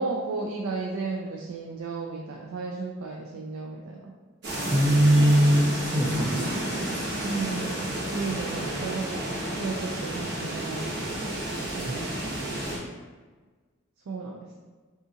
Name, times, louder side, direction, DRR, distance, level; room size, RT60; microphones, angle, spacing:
voice 1, 0.0-4.1 7.2-9.2 9.6-11.3 11.7-12.1 14.1-14.6, right 3 dB, 85° right, 0 dB, 0.4 m, -34 dB
sound 1, 4.4-12.8, right 1 dB, 55° right, 1.1 m, -31 dB
voice 2, 4.7-6.6 11.9-12.0, equal, 15° right, -6 dB, 0.4 m, -21 dB
5.4 x 2.4 x 2.8 m, 1.4 s
head